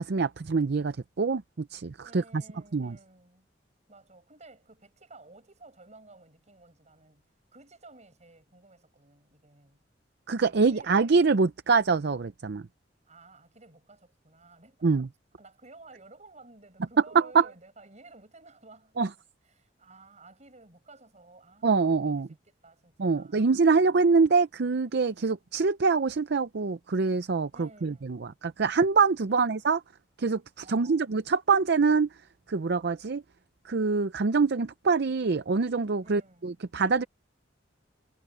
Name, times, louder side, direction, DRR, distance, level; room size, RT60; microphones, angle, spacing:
voice 1, 0.0-2.4 2.7-3.0 10.3-12.6 14.8-15.1 17.1-17.5 19.0-19.1 21.6-22.3 23.0-29.8 30.2-32.1 32.5-33.2 33.6-37.0, right 4 dB, 60° right, 0.6 m, -25 dB
voice 2, 2.0-3.5 3.9-9.8 10.5-11.1 13.0-15.0 15.4-19.0 19.4-23.5 27.5-28.3 29.3-29.5 30.6-31.2 36.0-36.6, right 2 dB, 40° right, 7.6 m, -54 dB
head